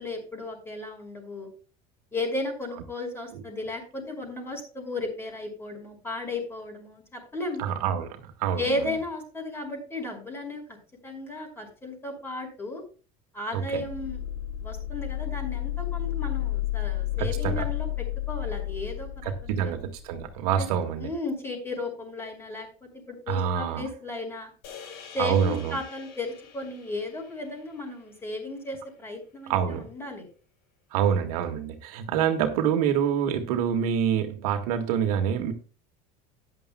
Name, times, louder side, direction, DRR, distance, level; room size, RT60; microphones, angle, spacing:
voice 1, 0.0-1.5 2.1-7.6 8.6-10.8 11.0-12.8 13.3-14.2 14.6-19.7 20.6-20.7 21.0-24.5 25.1-30.3, left 2 dB, 15° left, 5.6 m, -34 dB
voice 2, 7.6-8.7 13.5-13.8 17.2-17.7 19.2-21.1 23.3-23.9 25.2-25.8 29.5-29.9 30.9-35.5, right 8 dB, 85° right, 1.9 m, -26 dB
sound 1, 13.7-20.4, left 14 dB, 90° left, 3.0 m, -32 dB
sound 2, 24.6-29.0, left 6 dB, 65° left, 4.5 m, -48 dB
13.5 x 11.0 x 2.3 m
supercardioid pair, 125°, 19 cm